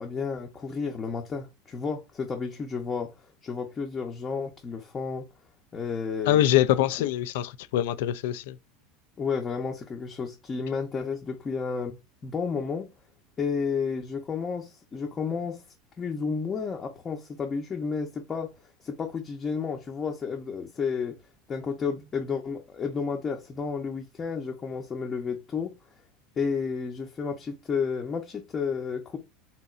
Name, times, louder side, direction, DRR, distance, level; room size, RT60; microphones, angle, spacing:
voice 1, 0.0-3.1 3.4-5.3 5.7-6.5 9.2-12.0 12.2-12.9 13.4-15.6 16.0-18.5 18.8-21.2 21.5-25.7 26.4-29.2, left 5 dB, 25° left, 0.7 m, -31 dB
voice 2, 6.3-8.6, left 12 dB, 65° left, 0.3 m, -24 dB
3.8 x 2.8 x 2.4 m
figure-of-eight pair, 75°, 0 cm